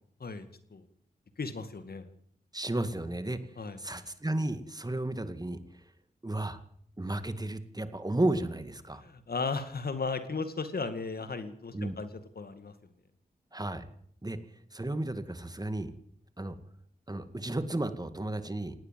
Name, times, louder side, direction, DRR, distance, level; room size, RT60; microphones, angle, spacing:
voice 1, 0.2-0.8 1.4-2.1 3.6-3.8 9.0-12.7, left 4 dB, 60° left, 10 dB, 2.3 m, -36 dB
voice 2, 2.5-3.4 3.8-5.6 6.2-6.6 7.0-9.0 11.7-11.9 13.5-13.8 14.2-14.4 14.7-15.9 16.4-16.6 17.1-18.7, right 1 dB, 20° right, 10 dB, 2.1 m, -33 dB
19.0 x 18.0 x 7.7 m, 0.66 s
cardioid pair, 50°, 18 cm